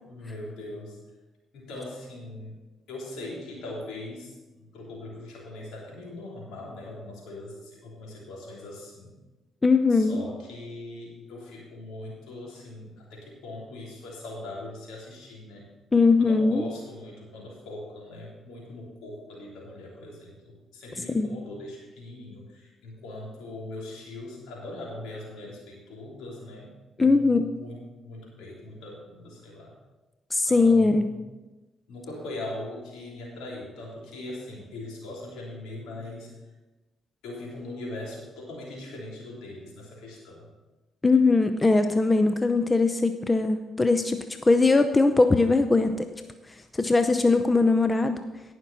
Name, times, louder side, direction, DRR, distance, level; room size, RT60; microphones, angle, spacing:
voice 1, 0.0-1.0 1.5-2.6 2.9-9.2 9.9-15.7 16.2-26.7 27.0-29.8 30.5-31.2 31.9-36.3 37.2-40.5, left 2 dB, 75° left, -3 dB, 3.4 m, -40 dB
voice 2, 9.6-10.2 15.9-16.6 21.1-21.3 27.0-27.4 30.3-31.0 41.0-46.1 46.7-48.2, left 3 dB, 25° left, 8 dB, 0.7 m, -21 dB
17.5 x 6.1 x 4.2 m, 1.1 s
hypercardioid pair, 50°, 0 cm